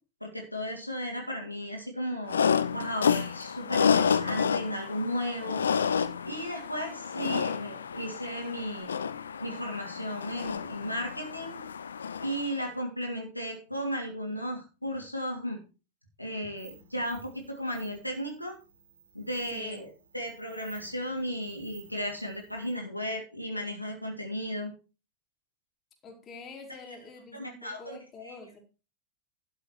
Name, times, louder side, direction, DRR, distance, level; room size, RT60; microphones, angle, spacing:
voice 1, 0.2-2.4 2.7-5.6 6.2-8.9 9.4-11.6 12.2-15.6 16.2-18.5 19.1-24.7 27.3-28.0 28.2-28.4, equal, 90° left, 1 dB, 2.8 m, -35 dB
sound 1, 2.3-12.6, left 6 dB, 70° left, 0.7 m, -30 dB
sound 2, 16.6-22.8, right 5 dB, 70° right, 3.9 m, -55 dB
voice 2, 19.5-19.9 26.0-28.6, left 3 dB, 25° left, 2 dB, 3.8 m, -46 dB
11.5 x 7.1 x 4.7 m, 0.32 s
figure-of-eight pair, 90°, 0 cm